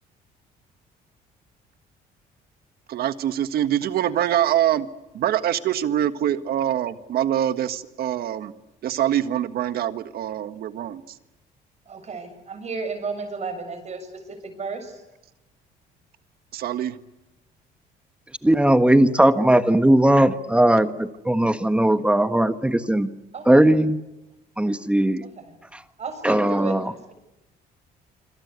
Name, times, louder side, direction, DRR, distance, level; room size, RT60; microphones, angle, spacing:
voice 1, 2.9-4.9 5.1-8.5 8.8-11.0 16.5-17.0, right 11 dB, 65° right, 11 dB, 1.7 m, -24 dB
voice 2, 11.9-15.0 23.3-23.7 25.4-25.6 26.0-27.1, right 4 dB, 40° right, 8 dB, 7.0 m, -33 dB
voice 3, 18.4-23.1 23.4-24.0 24.6-25.2 25.7-25.8 26.2-26.9, right 1 dB, 5° right, 10 dB, 1.4 m, -18 dB
27.0 x 26.5 x 8.2 m, 0.97 s
cardioid pair, 110°, 17 cm